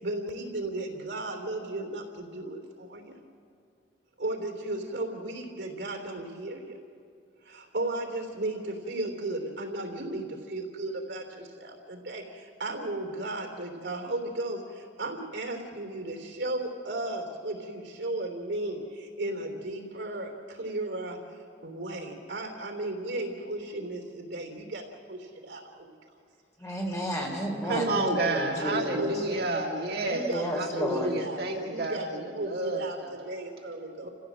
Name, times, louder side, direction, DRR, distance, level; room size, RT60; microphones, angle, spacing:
voice 1, 0.0-3.0 4.2-6.7 7.5-12.2 12.6-14.6 15.0-18.8 19.2-20.3 20.6-21.2 21.6-24.8 25.1-25.2 25.4-25.6 27.7-27.8 28.6-29.4 30.0-33.0 33.3-34.1, right 2 dB, 75° right, 3 dB, 3.4 m, -35 dB
voice 2, 26.6-29.2 30.3-31.1, equal, 15° left, -1 dB, 3.5 m, -32 dB
voice 3, 27.6-33.4 34.0-34.1, right 2 dB, 60° right, 0 dB, 1.9 m, -30 dB
30.0 x 15.5 x 7.7 m, 2.5 s
head